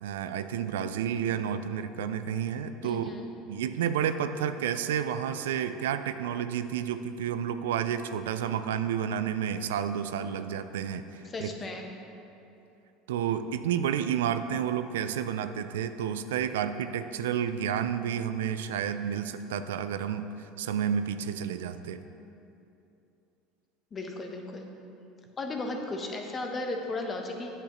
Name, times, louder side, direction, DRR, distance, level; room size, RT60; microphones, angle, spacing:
voice 1, 0.0-3.1 3.5-11.5 13.1-20.3 20.6-22.0, right 8 dB, 90° right, 11 dB, 0.3 m, -30 dB
voice 2, 2.8-3.2 11.2-11.9 23.9-24.7 25.4-27.5, left 2 dB, 30° left, 3 dB, 1.0 m, -35 dB
8.8 x 7.9 x 3.1 m, 2.8 s
supercardioid pair, 100°, 0 cm